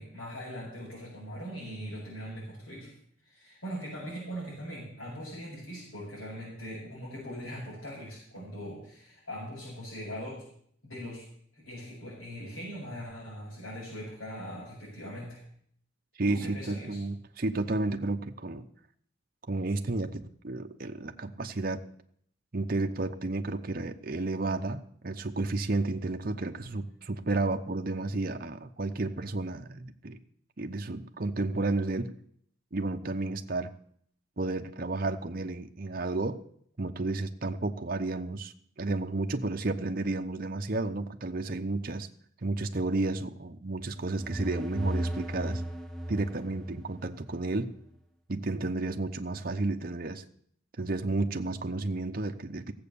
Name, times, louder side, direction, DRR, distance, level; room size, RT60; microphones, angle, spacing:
voice 1, 0.0-2.9 3.2-10.4 10.8-11.2 11.5-15.4 16.3-17.0, equal, 80° left, -7 dB, 6.6 m, -41 dB
voice 2, 16.2-18.7 19.5-21.8 22.5-30.2 30.6-32.1 32.7-33.7 34.4-36.4 36.8-42.1 42.4-45.6 46.1-47.7 48.3-50.2 50.8-52.7, right 2 dB, 45° right, 6 dB, 0.8 m, -32 dB
sound 1, 43.9-47.5, right 1 dB, ahead, 1.2 m, -35 dB
16.0 x 7.8 x 6.9 m, 0.64 s
head